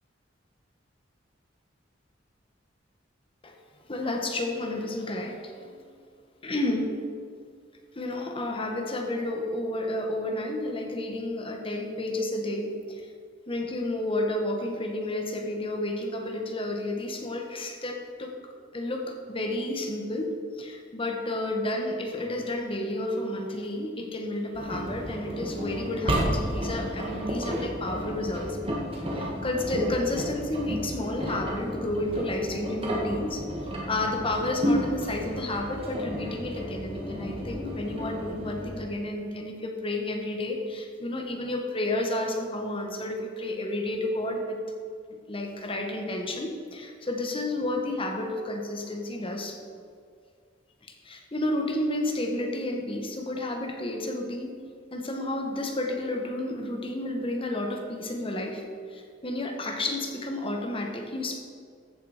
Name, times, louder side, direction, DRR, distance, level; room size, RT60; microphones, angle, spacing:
voice 1, 3.9-5.7 6.4-6.9 7.9-13.0 13.5-18.3 18.7-28.6 29.1-33.4 33.9-44.6 45.3-49.6 51.0-54.6 54.9-58.6 58.9-61.4, left 1 dB, 30° left, 3 dB, 1.4 m, -31 dB
Engine, 24.5-38.7, equal, 30° right, 2.0 m, -32 dB
14.5 x 7.1 x 5.0 m, 2.1 s
head